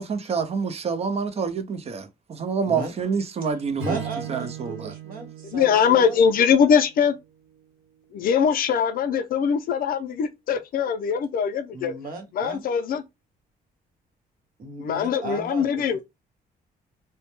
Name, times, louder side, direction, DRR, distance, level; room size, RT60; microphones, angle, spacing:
voice 1, 0.0-4.0 4.3-4.9, right 5 dB, 40° right, 0.5 m, -27 dB
voice 2, 3.8-6.2 11.7-12.6 14.6-16.0, right 3 dB, 60° right, 0.9 m, -35 dB
Strum, 3.8-8.1, right 7 dB, 80° right, 1.1 m, -39 dB
voice 3, 5.5-7.1 8.1-11.9 12.4-13.0 14.8-16.0, left 7 dB, 60° left, 0.4 m, -22 dB
2.2 x 2.0 x 2.9 m
cardioid pair, 125°, 17 cm